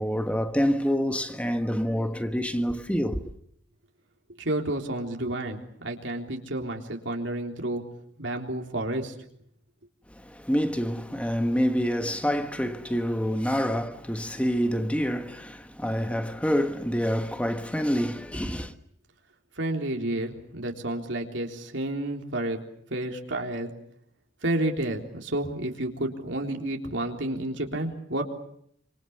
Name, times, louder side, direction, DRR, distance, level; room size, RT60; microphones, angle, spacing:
voice 1, 0.0-3.2 10.1-18.7, equal, 5° left, 1.4 m, -27 dB
voice 2, 4.4-7.8 8.2-9.1 19.6-22.6 22.9-23.7 24.4-28.2, right 1 dB, 75° right, 3.7 m, -30 dB
27.0 x 26.5 x 7.1 m
head